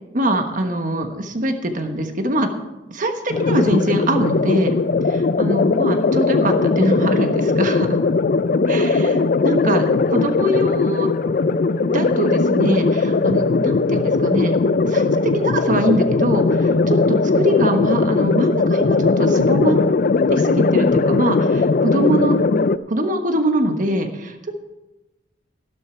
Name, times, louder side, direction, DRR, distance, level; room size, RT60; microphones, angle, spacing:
voice 1, 0.1-2.5 2.9-4.7 5.4-8.0 8.7-11.1 11.8-14.6 14.9-19.8 20.3-22.4 22.9-24.5, right 1 dB, 45° right, 6 dB, 1.3 m, -22 dB
sound 1, 3.3-22.8, left 3 dB, 50° left, 0.4 m, -19 dB
12.5 x 12.0 x 4.4 m, 1.0 s
head